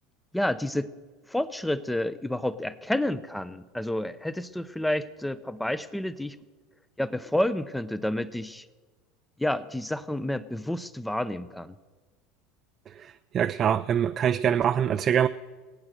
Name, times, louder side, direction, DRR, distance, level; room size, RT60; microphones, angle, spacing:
voice 1, 0.3-0.9 1.3-6.4 7.0-8.6 9.4-11.7, left 1 dB, 5° left, 15 dB, 0.8 m, -29 dB
voice 2, 13.0-15.3, right 9 dB, 40° right, 8 dB, 0.5 m, -24 dB
19.0 x 8.8 x 6.6 m, 1.3 s
hypercardioid pair, 85°, 0 cm